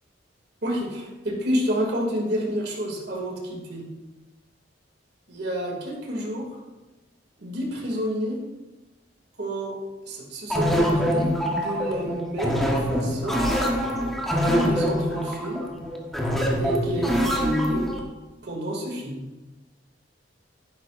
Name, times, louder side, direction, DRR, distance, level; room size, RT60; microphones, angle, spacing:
voice 1, 0.6-3.9 5.3-6.5 7.4-8.4 9.4-9.8 10.0-13.4 14.4-15.6 16.6-17.9 18.4-19.2, equal, 65° right, -2 dB, 2.5 m, -29 dB
sound 1, 10.5-18.0, equal, ahead, 1.3 m, -25 dB
11.0 x 10.5 x 2.6 m, 1.1 s
head